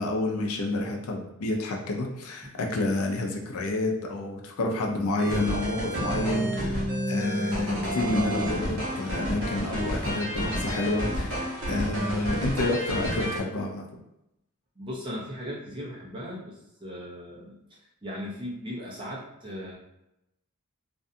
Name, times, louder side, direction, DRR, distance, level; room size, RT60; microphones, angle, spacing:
voice 1, 0.0-13.8, left 2 dB, 85° left, 1 dB, 0.5 m, -29 dB
sound 1, 5.2-13.4, equal, 70° right, 1.0 m, -30 dB
voice 2, 14.8-19.7, equal, 20° right, -6 dB, 0.7 m, -38 dB
2.6 x 2.2 x 2.6 m, 0.89 s
head